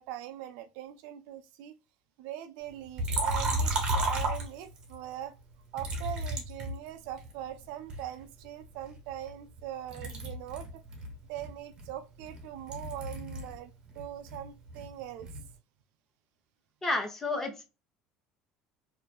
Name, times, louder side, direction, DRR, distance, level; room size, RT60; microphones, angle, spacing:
voice 1, 0.0-1.8 2.2-5.3 5.7-10.7 11.3-15.3, right 11 dB, 80° right, 0.3 m, -41 dB
Liquid, 3.0-4.9 5.8-7.3 7.9-9.6 9.9-13.6 13.9-15.5, right 2 dB, 40° right, 1.2 m, -33 dB
voice 2, 16.8-17.6, left 2 dB, 20° left, 0.9 m, -31 dB
2.5 x 2.2 x 2.2 m
supercardioid pair, 100°, 2 cm